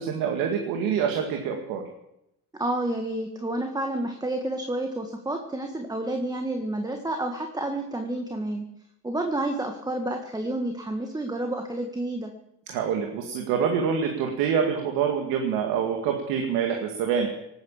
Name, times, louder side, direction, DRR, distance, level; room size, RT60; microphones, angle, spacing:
voice 1, 0.0-1.8 12.7-17.3, right 7 dB, 85° right, 3 dB, 2.1 m, -26 dB
voice 2, 2.5-8.6 9.0-12.3, right 1 dB, 10° right, 4 dB, 1.7 m, -30 dB
19.0 x 9.5 x 7.3 m, 0.83 s
cardioid pair, 95°, 34 cm